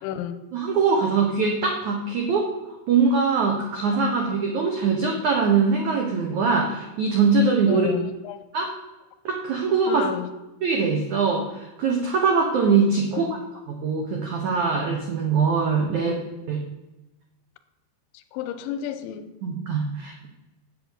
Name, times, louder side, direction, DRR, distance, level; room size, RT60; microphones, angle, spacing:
voice 1, 0.0-0.4 7.7-8.4 9.9-10.3 13.1-13.4 15.9-16.2 18.1-19.3, left 10 dB, 90° left, 3.1 m, -31 dB
voice 2, 0.5-2.5 2.9-7.9 8.5-8.7 9.2-10.0 10.6-13.3 13.7-16.1 16.5-16.6 19.4-20.3, right 5 dB, 65° right, 1.9 m, -22 dB
10.5 x 8.0 x 8.4 m
omnidirectional pair, 5.3 m